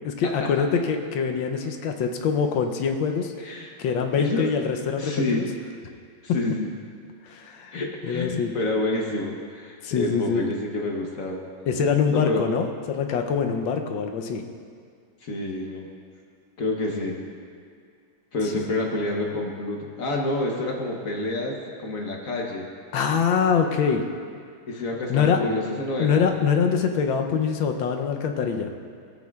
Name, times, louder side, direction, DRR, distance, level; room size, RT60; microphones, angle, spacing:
voice 1, 0.0-3.3 3.8-5.5 7.2-8.5 9.8-10.5 11.7-14.4 18.5-18.6 22.9-24.1 25.1-25.4 26.0-28.7, left 6 dB, 75° left, 4 dB, 1.4 m, -24 dB
voice 2, 3.4-3.7 4.2-4.5 4.9-5.4 6.3-6.7 7.7-11.4 12.1-12.5 15.2-15.9 16.6-17.2 18.3-22.7 24.7-26.2, left 2 dB, 55° left, 0 dB, 1.1 m, -28 dB
16.5 x 8.5 x 2.4 m, 2.2 s
omnidirectional pair, 2.2 m